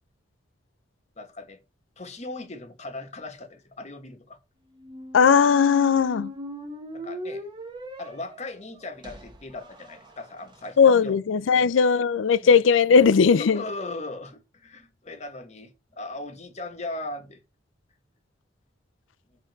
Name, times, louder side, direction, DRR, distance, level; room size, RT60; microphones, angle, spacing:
voice 1, 1.2-1.6 2.0-4.4 6.9-7.5 8.0-11.2 11.5-11.7 12.4-12.6 13.4-17.4, left 2 dB, 35° left, 1.1 m, -38 dB
sound 1, 4.7-10.7, left 1 dB, 25° right, 0.9 m, -39 dB
voice 2, 5.1-6.3 10.8-13.6, left 6 dB, 90° left, 0.4 m, -18 dB
6.4 x 3.7 x 4.0 m
head